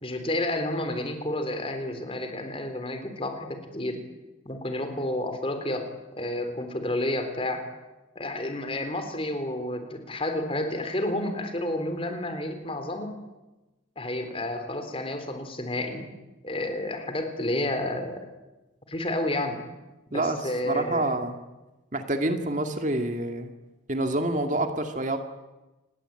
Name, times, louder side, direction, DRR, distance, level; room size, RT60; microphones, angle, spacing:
voice 1, 0.0-4.0 4.5-5.9 6.2-7.6 8.2-13.1 14.0-16.1 16.4-18.3 18.9-19.6 20.1-21.1, left 1 dB, 25° left, 7 dB, 3.7 m, -30 dB
voice 2, 20.7-21.4 21.9-23.5 23.9-25.2, right 2 dB, 40° right, 6 dB, 2.0 m, -27 dB
28.0 x 20.5 x 8.9 m, 1.1 s
head